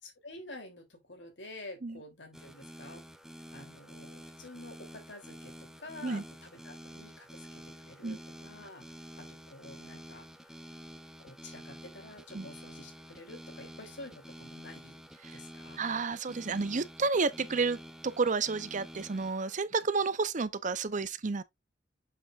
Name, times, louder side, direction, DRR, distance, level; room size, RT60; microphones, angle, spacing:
voice 1, 0.0-3.0 3.5-10.6 11.2-15.0 15.3-15.8, left 2 dB, 75° left, 3.2 m, -49 dB
sound 1, 2.3-19.6, equal, 5° right, 0.6 m, -49 dB
voice 2, 15.8-21.4, right 4 dB, 45° right, 0.7 m, -31 dB
7.5 x 6.2 x 2.5 m
head